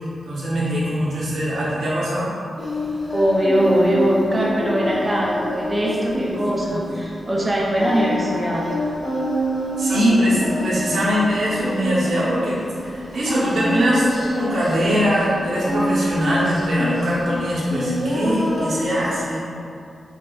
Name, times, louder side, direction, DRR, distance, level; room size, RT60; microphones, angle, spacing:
voice 1, 0.3-2.3 9.8-12.6 12.9-14.1 14.4-19.5, equal, 80° right, -8 dB, 0.9 m, -22 dB
Singing, 2.6-19.2, equal, 30° left, 1.4 m, -27 dB
voice 2, 3.1-8.6 9.9-10.1, equal, 25° right, -3 dB, 0.5 m, -21 dB
4.9 x 2.4 x 2.4 m, 2.5 s
wide cardioid pair, 140°, 0 cm